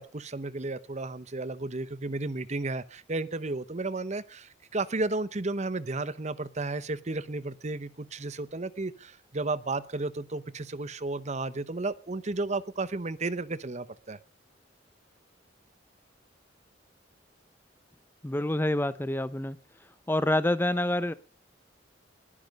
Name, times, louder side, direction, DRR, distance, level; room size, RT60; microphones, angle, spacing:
voice 1, 0.0-14.2, right 2 dB, 35° right, 0.9 m, -33 dB
voice 2, 18.2-19.6 20.1-21.1, left 1 dB, 10° left, 0.7 m, -27 dB
20.0 x 10.0 x 5.3 m
head